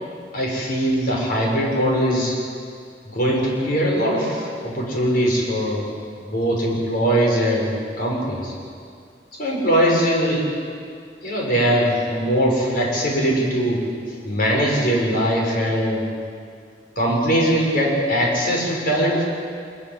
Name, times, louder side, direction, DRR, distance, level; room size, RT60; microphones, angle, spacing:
voice 1, 0.3-2.4 3.0-5.8 6.2-8.5 9.4-10.4 11.2-13.8 14.2-16.0 17.0-19.2, equal, 55° left, -2 dB, 6.7 m, -21 dB
24.5 x 22.5 x 7.7 m, 2.2 s
head